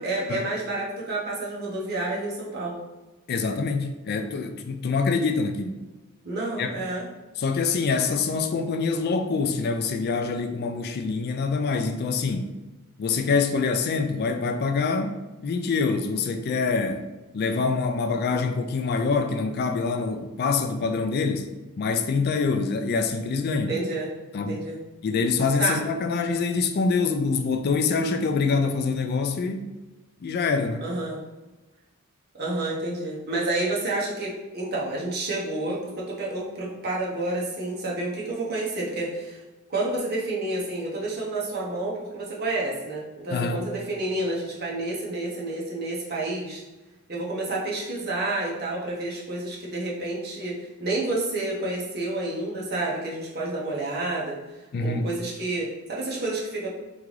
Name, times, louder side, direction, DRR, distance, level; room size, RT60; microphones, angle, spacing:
voice 1, 0.0-2.8 6.2-7.0 23.7-24.1 24.5-24.8 25.6-25.8 30.8-31.2 32.3-39.4 39.7-46.6 47.1-54.4 54.8-56.7, right 2 dB, 45° right, 1.2 m, -29 dB
voice 2, 3.3-5.8 6.6-6.7 7.4-12.5 13.0-17.0 17.3-21.5 21.8-23.8 24.3-24.6 25.0-29.7 30.2-30.9 43.3-43.6 54.7-55.1, left 4 dB, 45° left, 0.3 m, -25 dB
3.7 x 3.5 x 3.2 m
head